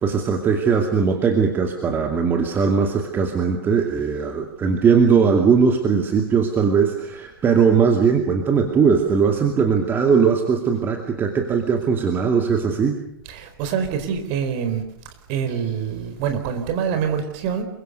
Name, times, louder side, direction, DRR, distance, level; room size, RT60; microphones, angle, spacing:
voice 1, 0.0-13.0, right 6 dB, 15° right, 4 dB, 2.4 m, -19 dB
voice 2, 13.3-14.8 15.3-17.6, right 7 dB, 35° right, 7 dB, 4.5 m, -25 dB
27.0 x 23.5 x 6.8 m, 0.73 s
figure-of-eight pair, 115°, 12 cm